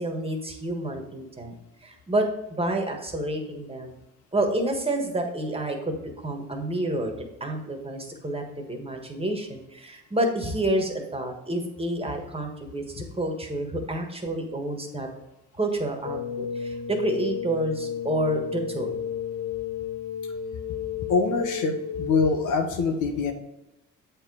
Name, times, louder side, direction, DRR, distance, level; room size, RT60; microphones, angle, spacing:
voice 1, 0.0-1.6 1.8-2.2 2.6-4.0 4.3-15.1 15.6-19.0, right 1 dB, 20° right, 3 dB, 1.5 m, -29 dB
sound 1, 16.0-22.5, left 7 dB, 65° left, 0.4 m, -32 dB
voice 2, 21.1-23.3, left 4 dB, 85° left, 6 dB, 1.0 m, -24 dB
7.9 x 4.5 x 4.7 m, 0.91 s
cardioid pair, 90°, 30 cm